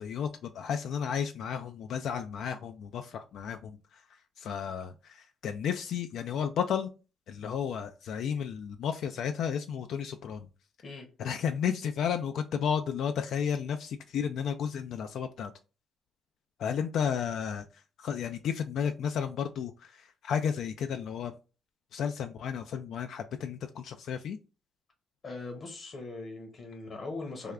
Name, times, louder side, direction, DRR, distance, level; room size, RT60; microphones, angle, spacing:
voice 1, 0.0-4.0 4.4-6.9 7.3-10.5 11.2-15.5 16.6-17.6 18.0-21.3 21.9-24.4, left 7 dB, 75° left, 7 dB, 0.3 m, -33 dB
voice 2, 25.2-27.5, left 3 dB, 50° left, 2 dB, 0.9 m, -40 dB
3.4 x 2.2 x 3.5 m, 0.33 s
cardioid pair, 90°, 0 cm